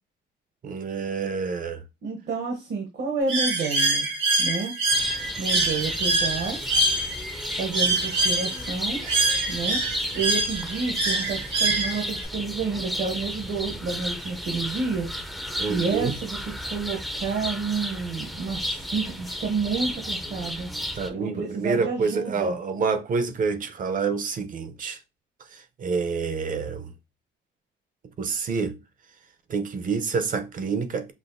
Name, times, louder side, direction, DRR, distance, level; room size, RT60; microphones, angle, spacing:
voice 1, 0.6-1.8 15.6-16.2 20.9-25.0 25.5-26.9 28.2-28.7 29.5-31.1, right 5 dB, 45° right, 0.7 m, -28 dB
voice 2, 2.0-4.1 4.4-4.7 5.4-6.6 7.6-9.0 9.5-9.8 10.1-15.1 15.4-16.4 16.7-20.7 21.1-22.6, right 4 dB, 65° right, 1.0 m, -29 dB
Bird, 3.3-12.3, right 2 dB, 85° right, 2.2 m, -25 dB
sound 1, 4.9-21.1, equal, ahead, 0.5 m, -33 dB
5.8 x 2.5 x 2.6 m
cardioid pair, 115°, 19 cm